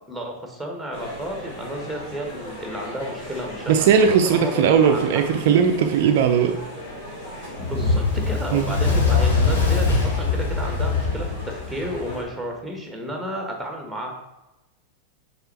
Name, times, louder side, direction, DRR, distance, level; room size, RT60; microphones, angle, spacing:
voice 1, 0.1-5.0 5.3-5.5 7.6-14.1, equal, ahead, 2 dB, 1.5 m, -32 dB
sound 1, 0.9-12.2, left 1 dB, 50° left, 2.5 m, -37 dB
voice 2, 3.7-6.6 8.5-8.7, right 7 dB, 50° right, 6 dB, 0.5 m, -18 dB
Fire, 7.6-12.1, left 4 dB, 70° left, 1.7 m, -22 dB
6.6 x 4.3 x 4.4 m, 1.0 s
figure-of-eight pair, 90°, 0 cm